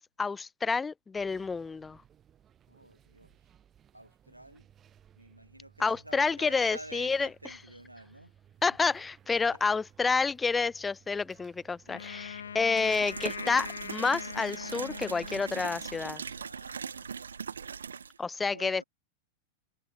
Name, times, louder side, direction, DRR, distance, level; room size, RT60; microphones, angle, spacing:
voice 1, 0.0-2.0 5.8-7.3 8.6-16.2 18.2-18.8, left 4 dB, 15° left, 0.3 m, -29 dB
sound 1, 1.1-16.5, right 9 dB, 25° right, 5.1 m, -61 dB
voice 2, 2.7-3.4 3.9-4.7 5.2-8.3 9.4-9.6 16.3-18.8, right 1 dB, 85° right, 5.9 m, -50 dB
Wind instrument woodwind instrument, 11.9-16.1, left 7 dB, 70° left, 1.4 m, -42 dB
sound 2, 12.8-18.2, right 6 dB, 70° right, 3.7 m, -40 dB
figure-of-eight pair, 90°, 0 cm